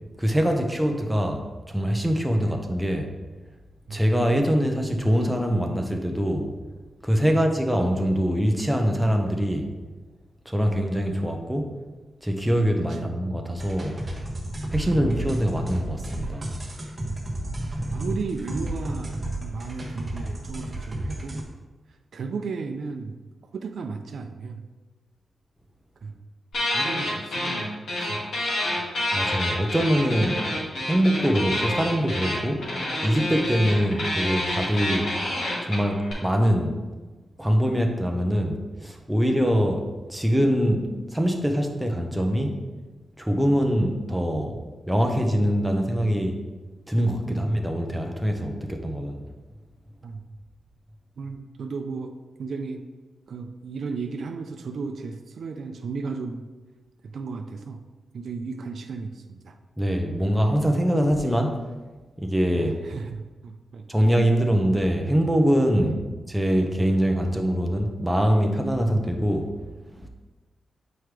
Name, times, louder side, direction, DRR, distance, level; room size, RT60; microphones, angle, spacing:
voice 1, 0.2-3.1 3.9-6.5 7.0-9.7 10.5-11.7 12.2-14.0 14.7-16.4 29.1-30.4 30.9-32.6 33.0-35.1 35.6-36.8 37.4-42.6 43.2-44.6 44.9-46.4 46.9-49.2 59.8-61.6 62.2-62.8 63.9-70.1, equal, 5° right, 2 dB, 0.7 m, -23 dB
voice 2, 12.9-13.2 14.8-15.1 17.0-17.2 17.9-21.4 22.1-23.2 23.5-24.6 26.0-26.2 26.7-27.7 28.0-28.2 28.8-28.9 47.3-47.4 50.0-50.2 51.2-52.9 53.3-56.5 57.1-57.8 58.1-59.6 62.5-63.9 65.8-65.9, right 4 dB, 65° right, 6 dB, 0.5 m, -34 dB
sound 1, 13.6-21.4, right 1 dB, 25° right, 1.1 m, -32 dB
sound 2, 26.5-27.6 27.9-36.1, left 1 dB, 75° left, 2.0 m, -28 dB
7.7 x 4.6 x 3.3 m, 1.2 s
wide cardioid pair, 140°, 0 cm